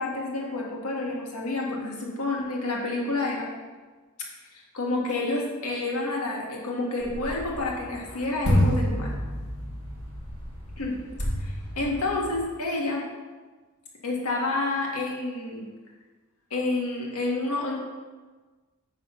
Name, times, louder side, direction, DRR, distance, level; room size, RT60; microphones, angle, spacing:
voice 1, 0.0-3.5 4.7-9.1 10.8-11.0 11.4-13.0 14.0-15.7 16.5-17.7, left 2 dB, 90° left, -2 dB, 1.9 m, -29 dB
sound 1, 7.0-12.4, equal, 30° left, 2.4 m, -29 dB
9.3 x 4.1 x 5.6 m, 1.3 s
head